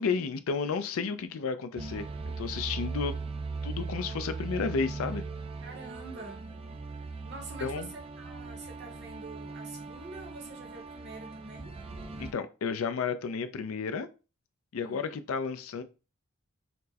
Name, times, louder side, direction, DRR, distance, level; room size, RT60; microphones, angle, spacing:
voice 1, 0.0-2.1 2.4-3.2 3.6-5.2 7.6-7.9 12.2-14.1 14.7-15.8, left 5 dB, 75° left, 0.4 m, -32 dB
sound 1, 1.8-12.3, right 3 dB, 25° right, 0.3 m, -39 dB
voice 2, 5.6-6.5 7.2-11.8 14.8-15.2, right 3 dB, 55° right, 1.0 m, -46 dB
4.3 x 2.0 x 2.7 m
head